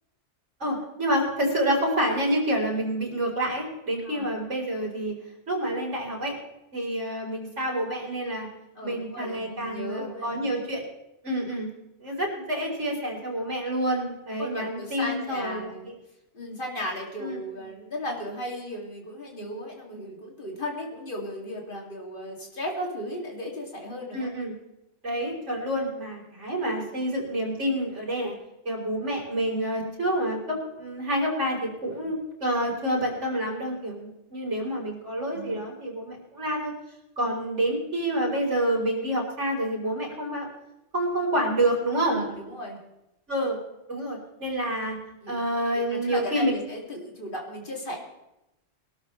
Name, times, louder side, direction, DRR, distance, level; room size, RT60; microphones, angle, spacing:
voice 1, 0.6-5.1 5.5-6.4 6.7-8.5 8.8-10.8 11.2-11.7 12.0-15.9 17.2-17.4 24.1-24.6 25.0-28.3 28.6-36.7 37.2-40.5 40.9-42.2 43.3-43.6 43.9-45.0 45.3-46.5, right 1 dB, 70° right, -2 dB, 4.4 m, -28 dB
voice 2, 8.8-10.5 14.4-15.9 16.3-24.3 32.0-32.2 35.3-35.6 37.2-37.4 42.0-42.8 45.2-45.5 45.9-48.0, equal, 45° left, -1 dB, 2.7 m, -36 dB
23.0 x 12.5 x 3.2 m, 0.90 s
omnidirectional pair, 1.3 m